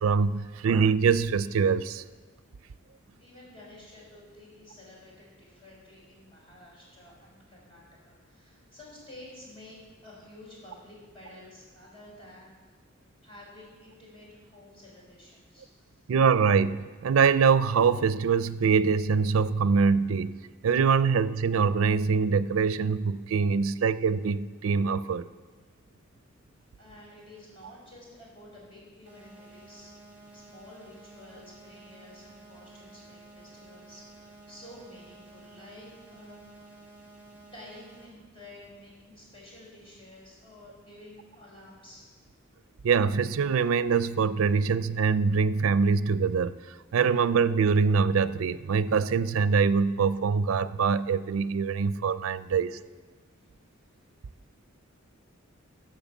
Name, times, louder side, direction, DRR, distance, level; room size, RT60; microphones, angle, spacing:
voice 1, 0.0-2.0 16.1-20.3 20.6-25.3 42.8-46.5 46.9-52.8, right 5 dB, 85° right, 15 dB, 0.4 m, -24 dB
voice 2, 2.9-12.5 13.0-16.0 26.8-36.8 37.5-42.1, left 1 dB, 25° left, -4 dB, 4.7 m, -51 dB
sound 1, 29.1-38.1, right 2 dB, 10° right, 2.1 m, -52 dB
12.0 x 7.6 x 7.1 m, 1.4 s
head